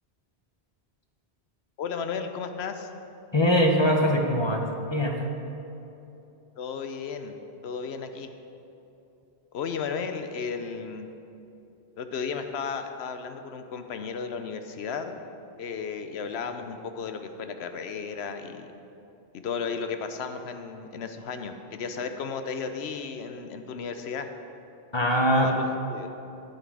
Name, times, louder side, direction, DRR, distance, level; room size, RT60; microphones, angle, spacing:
voice 1, 1.8-2.9 6.6-7.4 7.6-8.3 9.5-11.1 12.0-15.2 15.6-18.7 19.3-24.3 25.3-26.1, left 5 dB, 80° left, 7 dB, 1.0 m, -34 dB
voice 2, 3.3-5.2 24.9-25.5, equal, 30° left, 2 dB, 0.8 m, -22 dB
9.2 x 9.1 x 4.8 m, 2.9 s
omnidirectional pair, 1.1 m